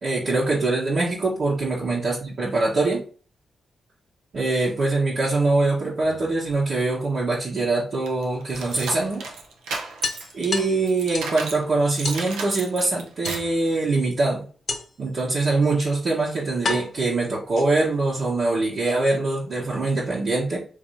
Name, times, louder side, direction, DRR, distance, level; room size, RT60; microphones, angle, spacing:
voice 1, 0.0-3.0 4.3-9.2 10.3-14.4 15.0-20.6, right 3 dB, 65° right, -6 dB, 1.1 m, -23 dB
sound 1, 6.0-7.0 8.5-8.6 9.0-9.1 9.4-9.5 10.0-11.4 12.0-12.3 13.2-13.8 14.7-15.1 15.9-16.0 16.6-18.0, left 4 dB, 55° left, 0.7 m, -32 dB
sound 2, 8.1-11.6 12.0-13.6, right 3 dB, 85° right, 0.7 m, -34 dB
3.3 x 2.8 x 4.1 m, 0.40 s
supercardioid pair, 40°, 0 cm